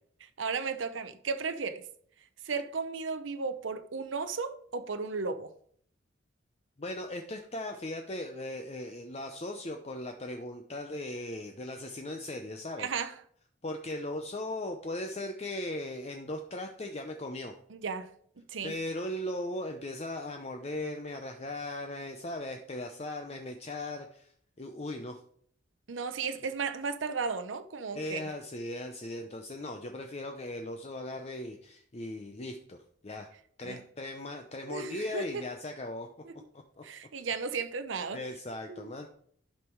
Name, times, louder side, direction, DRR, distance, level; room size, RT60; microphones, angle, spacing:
voice 1, 0.4-1.8 2.5-5.5 12.8-13.1 17.7-18.1 18.4-18.7 25.9-28.2 33.6-33.8 34.7-35.4 36.2-36.4 36.8-38.2 38.7-38.9, right 5 dB, 90° right, 0.7 m, -34 dB
voice 2, 6.8-12.9 13.6-17.5 18.6-24.3 24.6-25.2 27.9-33.3 33.6-36.1 36.5-36.8 38.1-39.1, left 1 dB, 35° left, 0.7 m, -38 dB
11.5 x 5.6 x 4.6 m
head